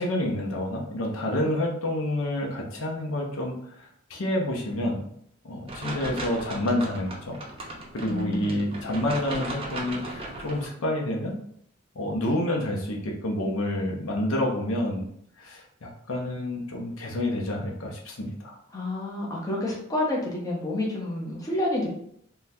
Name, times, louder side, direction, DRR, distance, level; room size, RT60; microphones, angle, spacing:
voice 1, 0.0-3.5 3.8-5.0 5.4-7.4 7.9-11.3 12.0-15.1 15.4-18.6, left 1 dB, 75° left, 0 dB, 0.7 m, -28 dB
sound 1, 5.7-10.7, right 1 dB, 25° right, 0.6 m, -37 dB
voice 2, 8.1-8.7 18.7-21.9, left 1 dB, 15° left, -4 dB, 0.7 m, -29 dB
3.7 x 2.3 x 2.7 m, 0.69 s
head